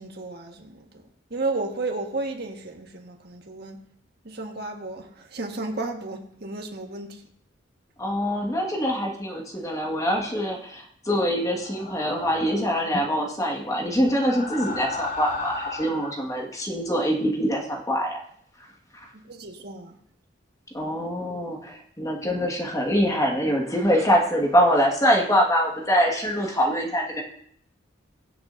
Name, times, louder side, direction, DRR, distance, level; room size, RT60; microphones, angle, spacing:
voice 1, 0.0-3.8 4.2-7.2 19.1-20.0, right 3 dB, 55° right, 2 dB, 1.6 m, -33 dB
voice 2, 8.0-18.2 18.9-19.1 20.7-27.2, equal, 20° left, 0 dB, 1.8 m, -24 dB
sound 1, 11.6-12.8 14.0-16.2, left 3 dB, 45° left, 3.3 m, -34 dB
22.0 x 7.7 x 2.7 m, 0.65 s
head